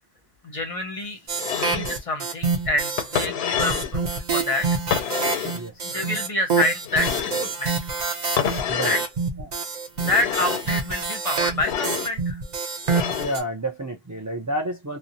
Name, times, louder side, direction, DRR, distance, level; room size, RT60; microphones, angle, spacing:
voice 1, 0.4-1.2 1.5-4.7 5.8-7.7 8.8-9.0 10.1-12.4, left 2 dB, 40° left, 0.7 m, -27 dB
sound 1, 1.3-3.3 3.6-13.4, right 4 dB, 50° right, 0.8 m, -27 dB
sound 2, 1.4-2.0 3.0-4.0 4.9-5.6 6.9-7.5 8.4-9.1 10.0-10.7 11.6-12.1 12.9-13.4, left 8 dB, 90° left, 0.9 m, -27 dB
voice 2, 5.5-5.9 8.7-9.0 9.4-9.5 13.2-15.0, right 1 dB, 30° right, 0.3 m, -30 dB
2.8 x 2.0 x 2.5 m
omnidirectional pair, 1.0 m